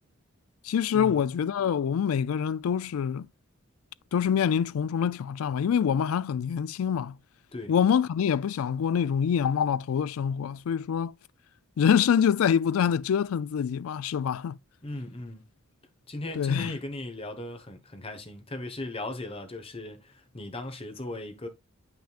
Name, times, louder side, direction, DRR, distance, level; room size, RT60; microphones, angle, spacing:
voice 1, 0.6-3.3 4.1-7.2 7.7-11.1 11.8-14.6 16.4-16.7, left 8 dB, 85° left, 0.3 m, -25 dB
voice 2, 14.8-15.5 16.1-21.5, left 2 dB, 25° left, 1.2 m, -37 dB
8.6 x 6.0 x 2.4 m
head